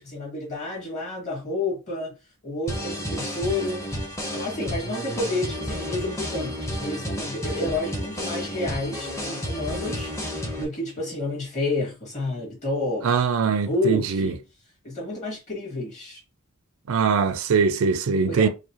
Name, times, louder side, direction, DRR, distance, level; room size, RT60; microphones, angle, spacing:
voice 1, 0.0-2.1 2.4-3.9 4.3-13.1 13.7-14.4 14.8-16.2 18.3-18.5, left 2 dB, 30° left, 2.0 m, -30 dB
sound 1, 2.7-10.6, equal, 15° left, 0.8 m, -31 dB
voice 2, 13.0-14.3 16.9-18.5, right 5 dB, 65° right, 0.4 m, -22 dB
4.7 x 2.2 x 2.9 m
head